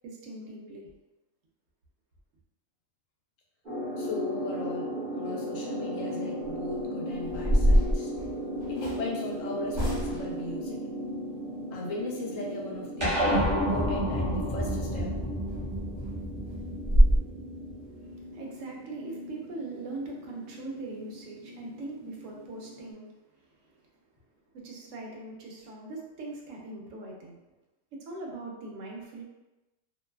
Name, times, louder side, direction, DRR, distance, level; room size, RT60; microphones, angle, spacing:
voice 1, 0.0-0.8 18.3-23.1 23.6-23.7 24.5-27.4 27.9-29.2, right 2 dB, 80° right, -1 dB, 0.9 m, -41 dB
sound 1, 3.6-22.9, equal, 50° right, 0.9 m, -37 dB
voice 2, 4.0-8.1 8.7-10.8 11.7-15.1, left 2 dB, 80° left, -2 dB, 1.0 m, -37 dB
sound 2, 6.5-6.7 7.2-9.0 9.7-10.4 14.9-15.0 15.5-15.6 16.0-16.1 16.4-16.5 16.8-17.2, equal, 35° left, 0.8 m, -23 dB
sound 3, 13.0-17.7, equal, 30° right, 0.7 m, -29 dB
2.6 x 2.2 x 2.2 m, 1.0 s
omnidirectional pair, 1.3 m